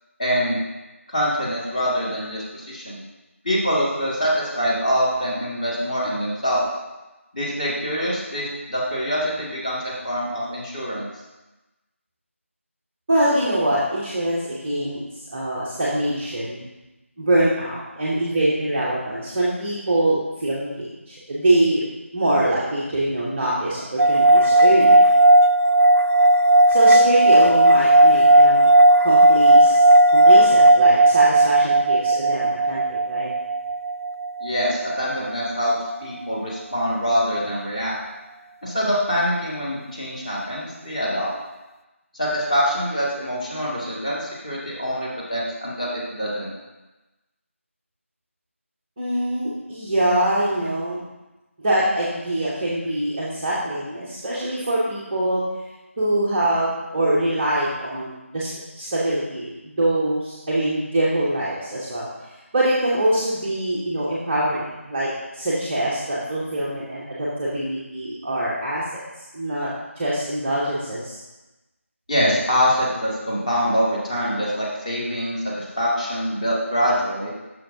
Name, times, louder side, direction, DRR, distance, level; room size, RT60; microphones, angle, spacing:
voice 1, 0.2-0.6 1.1-3.0 3.4-6.6 7.3-11.1 34.4-35.7 36.0-38.0 38.6-41.3 42.1-46.5 72.1-77.3, equal, 30° left, -5 dB, 1.8 m, -24 dB
voice 2, 13.1-15.0 15.3-16.6 17.2-21.9 22.1-25.0 26.7-28.7 29.0-29.8 30.1-33.3 49.0-51.0 51.6-55.4 56.0-58.5 58.8-62.1 62.5-69.0 69.3-69.7 70.0-71.2, right 1 dB, 10° right, -10 dB, 0.6 m, -23 dB
sound 1, 24.0-35.3, right 1 dB, 80° right, 0.4 m, -15 dB
10.0 x 6.3 x 2.6 m, 1.1 s
figure-of-eight pair, 170°, 7 cm